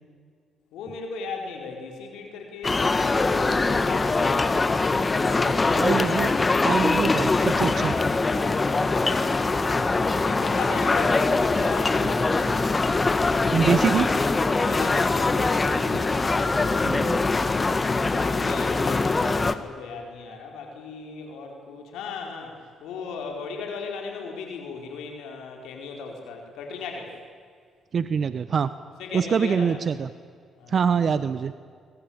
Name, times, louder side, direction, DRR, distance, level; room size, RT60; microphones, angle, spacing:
voice 1, 0.7-5.8 10.2-12.7 13.8-14.1 14.7-16.5 18.1-27.2 29.0-29.8 30.6-30.9, left 5 dB, 90° left, 2 dB, 4.7 m, -37 dB
sound 1, 2.6-19.5, left 3 dB, 25° left, 1.6 m, -23 dB
voice 2, 5.7-6.3 6.6-7.9 13.5-14.1 15.9-16.0 16.6-17.2 27.9-28.7 29.1-30.1 30.7-31.5, right 6 dB, 50° right, 13 dB, 1.0 m, -24 dB
25.0 x 22.5 x 8.9 m, 2.1 s
cardioid pair, 90°, 0 cm